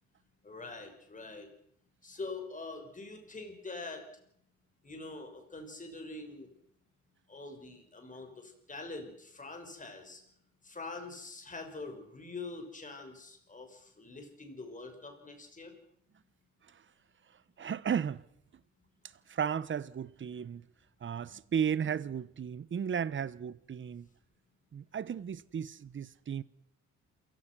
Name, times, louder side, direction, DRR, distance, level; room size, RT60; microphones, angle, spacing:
voice 1, 0.4-1.5 2.0-4.0 4.8-6.5 7.3-10.2 10.6-15.8, left 3 dB, 25° left, 5.9 m, -44 dB
voice 2, 17.6-18.2 19.3-20.6 21.0-24.1 24.7-26.4, right 8 dB, 40° right, 1.0 m, -34 dB
28.0 x 17.0 x 6.2 m
cardioid pair, 90°, 30 cm